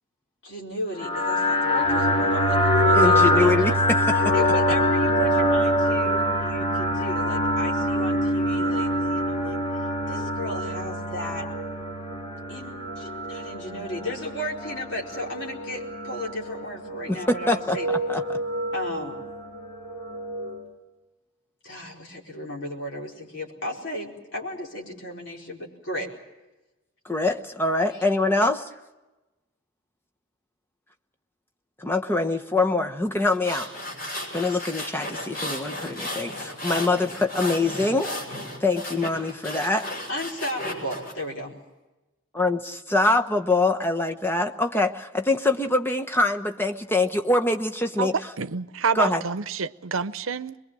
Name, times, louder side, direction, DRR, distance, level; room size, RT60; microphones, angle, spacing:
voice 1, 0.4-3.7 4.3-9.6 10.1-11.5 12.5-18.0 18.7-19.2 21.6-26.1 40.1-41.6, equal, 60° left, 4.7 m, -34 dB
sound 1, 1.0-20.7, equal, 30° left, 2.6 m, -25 dB
voice 2, 2.9-4.3 17.1-17.8 18.1-18.4 27.0-28.7 31.8-33.7 34.3-38.1 38.6-39.9 42.3-48.1 48.9-49.2, left 2 dB, 10° left, 1.0 m, -24 dB
sound 2, 33.2-41.1, left 1 dB, 45° left, 6.4 m, -34 dB
voice 3, 48.4-50.6, right 5 dB, 90° right, 0.8 m, -28 dB
23.5 x 22.0 x 7.5 m
head